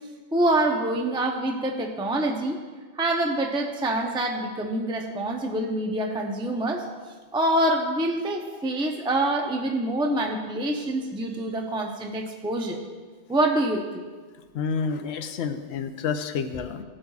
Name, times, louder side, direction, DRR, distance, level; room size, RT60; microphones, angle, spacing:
voice 1, 0.3-2.6 3.0-6.8 7.3-12.8 13.3-13.8, right 1 dB, 5° right, 1 dB, 0.6 m, -26 dB
voice 2, 14.5-16.8, left 6 dB, 75° left, 8 dB, 0.9 m, -29 dB
16.5 x 8.6 x 2.4 m, 1.5 s
omnidirectional pair, 1.1 m